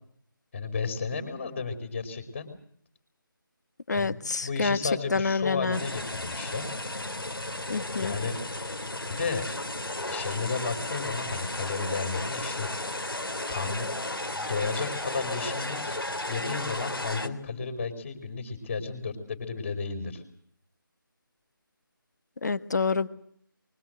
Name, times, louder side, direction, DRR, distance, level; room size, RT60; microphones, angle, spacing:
voice 1, 0.5-2.5 3.9-6.7 8.0-8.5 9.1-9.4 10.1-12.7 13.5-13.9 14.3-16.0 16.3-20.2, left 4 dB, 30° left, 4 dB, 4.3 m, -33 dB
voice 2, 3.9-4.8 5.1-5.8 7.7-8.1 22.4-23.1, left 4 dB, 50° left, 13 dB, 1.6 m, -27 dB
sound 1, 5.7-17.3, left 1 dB, 85° left, 3.4 m, -34 dB
24.5 x 21.0 x 7.9 m, 0.63 s
figure-of-eight pair, 165°, 12 cm